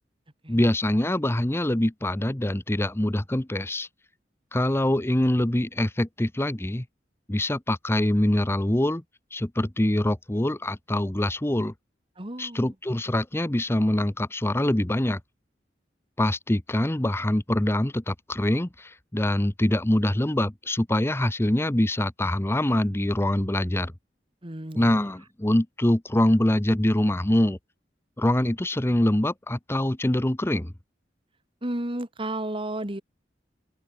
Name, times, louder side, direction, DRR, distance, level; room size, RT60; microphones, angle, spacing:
voice 1, 0.5-3.9 4.5-6.8 7.3-9.0 9.3-11.7 12.4-15.2 16.2-23.9 24.7-27.6 28.2-30.7, left 1 dB, 15° left, 0.9 m, -24 dB
voice 2, 12.2-12.7 24.4-25.1 31.6-33.0, right 1 dB, 30° right, 2.2 m, -33 dB
open air
head